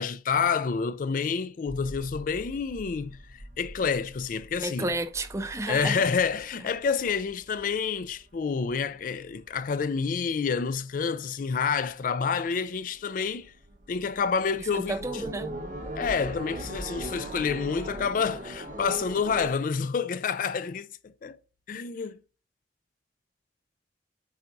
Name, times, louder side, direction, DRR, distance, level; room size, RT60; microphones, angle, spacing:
voice 1, 0.0-4.9 5.7-13.5 13.9-14.9 16.0-21.4 21.7-22.2, left 5 dB, 45° left, 0.3 m, -28 dB
sound 1, 1.7-10.5 10.9-11.6 11.9-12.0 12.3-19.5, right 1 dB, 45° right, 1.2 m, -41 dB
voice 2, 4.6-6.0 14.7-15.5, right 2 dB, 15° right, 0.5 m, -31 dB
8.8 x 4.1 x 2.6 m
head